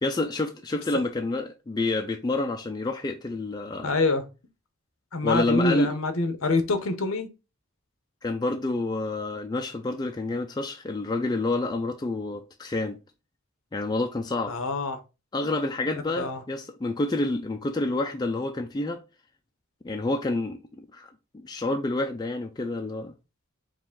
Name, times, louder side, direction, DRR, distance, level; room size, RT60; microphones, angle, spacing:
voice 1, 0.0-3.9 5.2-5.9 8.2-13.0 13.7-14.6 15.3-19.0 19.8-23.1, left 2 dB, 20° left, 0.3 m, -28 dB
voice 2, 3.8-4.2 5.1-7.3 14.5-15.0 15.9-16.4, left 3 dB, 65° left, 0.8 m, -26 dB
4.8 x 2.5 x 3.6 m
head